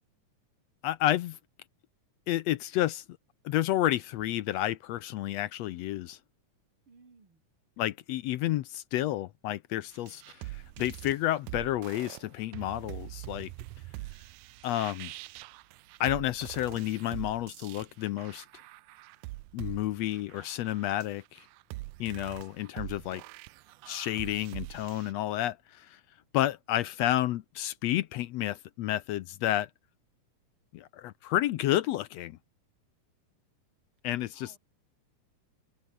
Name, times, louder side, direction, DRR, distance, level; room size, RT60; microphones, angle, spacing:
voice 1, 0.8-1.4 2.3-3.0 3.5-6.2 7.8-13.5 14.6-15.1 16.0-18.5 19.5-21.5 22.0-23.2 23.9-26.0 26.3-29.7 30.7-32.4 34.0-34.5, left 14 dB, 75° left, 1.7 m, -30 dB
voice 2, 6.9-7.4 34.3-34.6, right 4 dB, 40° right, 5.4 m, -58 dB
sound 1, 9.9-25.1, right 19 dB, 85° right, 2.1 m, -44 dB
open air
omnidirectional pair, 3.5 m